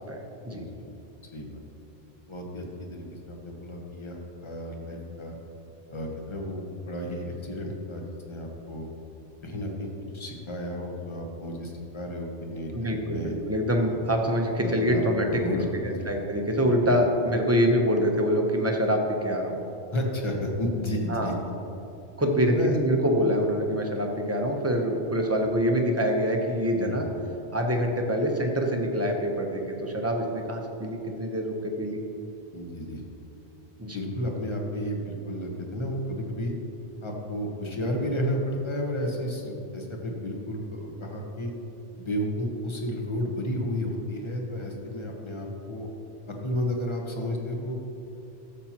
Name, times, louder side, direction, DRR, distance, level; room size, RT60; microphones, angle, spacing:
voice 1, 0.1-0.6 12.7-15.4 15.8-19.6 21.1-21.3 22.2-27.1 27.5-32.0 33.8-34.0, equal, 15° right, 2 dB, 0.7 m, -25 dB
voice 2, 2.3-2.6 2.9-5.3 5.9-8.9 9.4-13.3 14.6-15.0 15.3-16.1 16.6-16.9 19.9-21.3 22.5-22.8 26.7-26.9 32.5-33.0 33.8-36.5 37.0-41.5 42.0-45.9 46.3-47.7, equal, 25° left, 1 dB, 1.0 m, -32 dB
13.0 x 7.2 x 2.9 m, 2.8 s
omnidirectional pair, 1.2 m